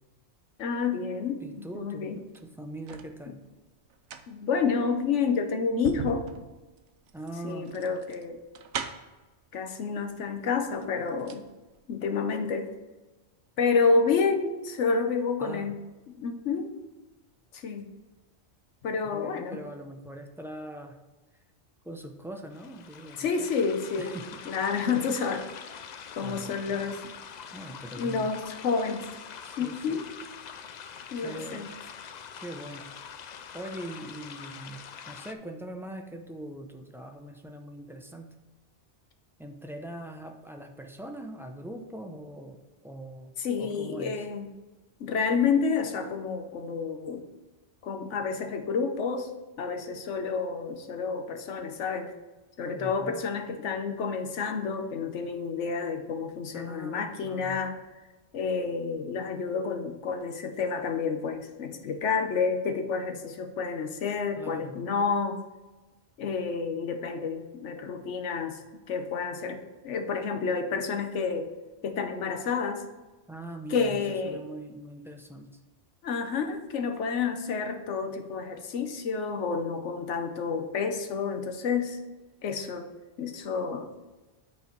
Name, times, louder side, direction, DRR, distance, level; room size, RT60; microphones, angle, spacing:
voice 1, 0.6-2.2 4.3-6.3 7.4-8.4 9.5-11.4 11.9-12.7 13.6-15.8 16.2-16.7 17.5-17.9 18.8-19.6 23.2-24.2 24.5-25.5 26.1-27.0 28.0-29.1 29.6-30.1 31.1-31.7 43.4-44.5 45.0-47.2 47.8-49.3 49.6-52.1 52.6-57.8 58.3-65.4 66.2-68.6 68.9-69.6 69.8-71.5 71.8-72.8 73.7-74.4 76.0-82.0 82.4-82.9 83.2-83.9, left 5 dB, 90° left, 6 dB, 1.2 m, -29 dB
voice 2, 1.4-3.4 7.1-7.7 15.4-15.7 19.0-21.0 21.8-23.5 24.0-24.4 26.2-27.0 27.5-28.3 29.4-30.0 31.2-31.7 32.4-32.9 33.5-34.8 35.1-38.3 39.4-44.3 52.7-53.3 56.5-57.6 64.4-64.8 73.3-75.6, right 1 dB, 5° right, 4 dB, 0.4 m, -42 dB
sound 1, 2.2-3.1 3.9-9.2 10.2-10.3 10.7-11.5 11.8-11.9, right 7 dB, 85° right, 1.0 m, -40 dB
sound 2, 22.5-35.3, left 7 dB, 60° left, 0.4 m, -44 dB
8.3 x 4.6 x 4.5 m, 1.2 s
omnidirectional pair, 1.2 m